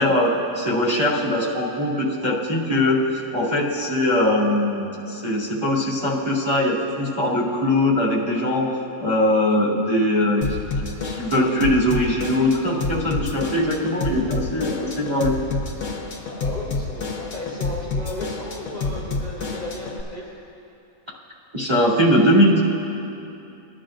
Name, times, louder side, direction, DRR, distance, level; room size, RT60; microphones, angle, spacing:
voice 1, 0.0-8.7 9.0-10.4 11.0-15.3 21.5-22.6, left 1 dB, 15° right, -8 dB, 2.2 m, -21 dB
Drum kit / Drum, 10.4-20.0, left 3 dB, 70° left, 1.6 m, -29 dB
voice 2, 16.3-20.3, left 1 dB, 25° left, -6 dB, 1.5 m, -34 dB
20.5 x 11.5 x 2.5 m, 2.8 s
omnidirectional pair, 1.8 m